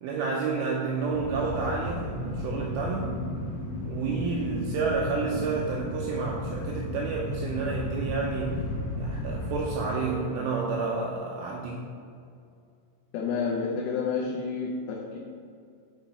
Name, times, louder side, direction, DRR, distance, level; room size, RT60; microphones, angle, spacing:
voice 1, 0.0-3.1 3.8-8.7 9.0-11.8, right 4 dB, 85° right, -1 dB, 2.5 m, -30 dB
sound 1, 1.1-9.9, left 1 dB, 65° left, 2.9 m, -34 dB
voice 2, 13.1-15.2, left 5 dB, 90° left, -4 dB, 3.3 m, -30 dB
8.7 x 3.1 x 5.4 m, 2.3 s
omnidirectional pair, 5.6 m